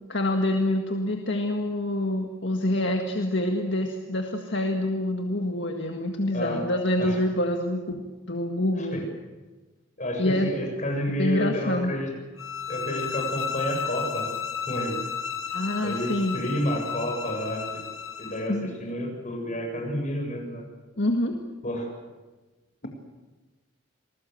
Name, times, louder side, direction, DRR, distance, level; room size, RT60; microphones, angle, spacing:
voice 1, 0.1-9.0 10.2-10.5 11.2-11.9 15.5-16.4 18.5-18.7 21.0-21.4, left 1 dB, 60° left, 3 dB, 1.9 m, -26 dB
voice 2, 10.0-12.1 12.7-14.3 14.7-15.0 15.8-17.8 18.2-20.6 21.6-21.9 22.8-22.9, equal, 35° left, 1 dB, 7.4 m, -30 dB
sound 1, 12.4-18.5, left 7 dB, 85° left, 2.3 m, -33 dB
28.5 x 20.5 x 7.9 m, 1.2 s
head